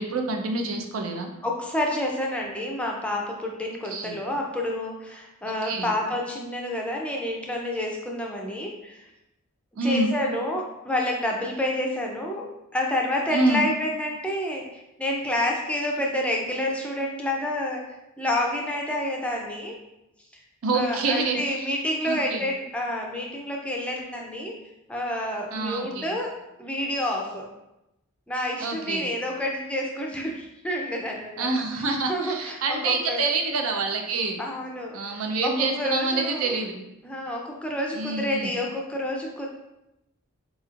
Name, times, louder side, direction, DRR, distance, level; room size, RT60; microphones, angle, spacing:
voice 1, 0.0-1.3 3.8-4.2 5.6-5.9 9.8-10.1 13.3-13.6 20.6-21.6 22.1-22.4 25.5-26.1 28.6-29.1 31.4-34.4 34.9-36.8 37.9-38.5, right 3 dB, 80° right, 3 dB, 0.5 m, -27 dB
voice 2, 1.4-9.1 9.8-19.8 20.7-24.5 24.9-26.3 26.6-27.5 28.3-31.5 31.8-33.2 34.4-36.6 37.0-39.5, left 1 dB, 5° left, 0 dB, 0.4 m, -29 dB
4.1 x 3.0 x 2.4 m, 0.90 s
head